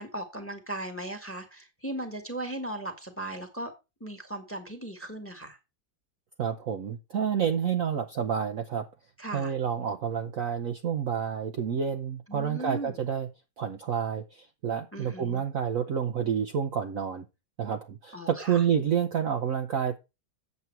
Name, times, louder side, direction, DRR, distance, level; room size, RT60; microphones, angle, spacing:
voice 1, 0.0-3.7 4.0-5.6 9.2-9.5 12.3-12.9 14.9-15.4 18.1-18.6, right 1 dB, 5° left, 6 dB, 1.4 m, -37 dB
voice 2, 6.4-8.9 9.3-13.3 13.6-17.3 17.6-20.0, right 8 dB, 55° right, 5 dB, 1.0 m, -29 dB
8.5 x 7.5 x 4.6 m, 0.26 s
omnidirectional pair, 2.1 m